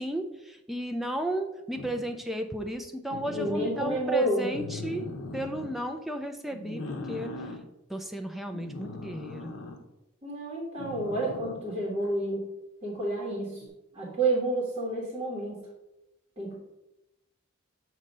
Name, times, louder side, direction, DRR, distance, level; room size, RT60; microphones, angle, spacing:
voice 1, 0.0-5.1 5.3-7.5 7.9-9.5, right 1 dB, ahead, 3 dB, 0.4 m, -34 dB
sound 1, 1.8-2.2 3.1-4.0 4.5-5.7 6.5-7.6 8.5-9.8 10.8-11.7 13.6-13.7, left 2 dB, 75° left, 0.9 m, -39 dB
voice 2, 3.3-4.4 10.2-12.4 12.8-13.6 13.9-15.6 16.4-16.6, right 2 dB, 25° right, -6 dB, 1.4 m, -29 dB
7.3 x 2.8 x 5.3 m, 0.93 s
head